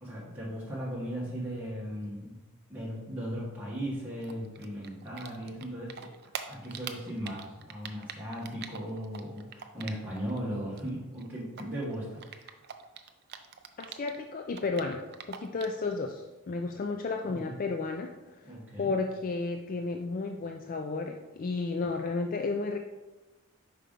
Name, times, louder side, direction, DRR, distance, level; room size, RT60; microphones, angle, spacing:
voice 1, 0.0-2.3 2.7-6.1 6.4-12.6 17.3-17.6 18.4-18.9, equal, 10° right, -7 dB, 1.2 m, -37 dB
Typing, 4.2-10.4 10.6-14.2 14.5-15.8, right 8 dB, 45° right, 0.4 m, -43 dB
voice 2, 13.8-15.0 15.3-18.1 18.4-22.8, left 3 dB, 40° left, 4 dB, 0.4 m, -33 dB
5.1 x 4.4 x 5.1 m, 1.1 s
head